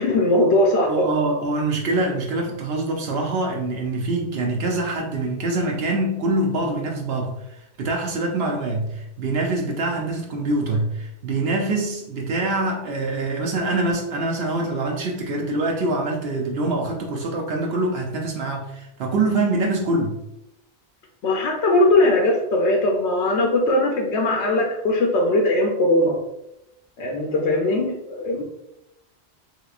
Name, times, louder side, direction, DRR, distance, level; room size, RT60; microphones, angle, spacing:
voice 1, 0.0-0.9 21.2-26.2 27.0-28.4, left 1 dB, 90° left, 1 dB, 0.9 m, -20 dB
voice 2, 0.9-20.2, right 2 dB, 70° right, 0 dB, 0.8 m, -24 dB
3.6 x 2.9 x 2.4 m, 0.86 s
omnidirectional pair, 1.1 m